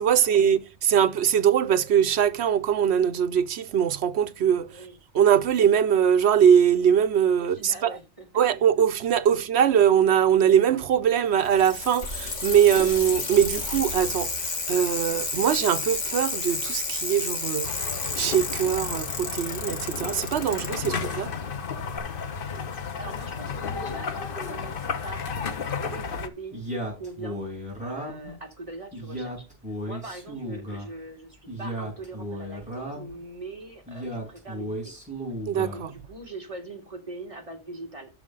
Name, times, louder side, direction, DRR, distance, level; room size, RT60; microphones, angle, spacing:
voice 1, 0.0-4.8 5.1-8.0 8.3-17.7 18.2-21.3 35.5-35.9, right 8 dB, 65° right, 0.9 m, -22 dB
voice 2, 7.4-8.4 23.0-26.6 27.0-27.5 27.8-29.5 29.8-34.9 35.7-38.1, right 2 dB, 30° right, 2.4 m, -41 dB
Bicycle, 11.3-20.9 22.0-22.1, left 3 dB, 80° left, 2.1 m, -31 dB
sound 1, 17.6-26.3, left 5 dB, 50° left, 1.0 m, -33 dB
Male speech man speaking, 26.5-28.3 28.9-30.9 31.5-33.2 33.9-35.8, equal, 5° right, 5.7 m, -35 dB
10.5 x 6.4 x 3.8 m
omnidirectional pair, 1.2 m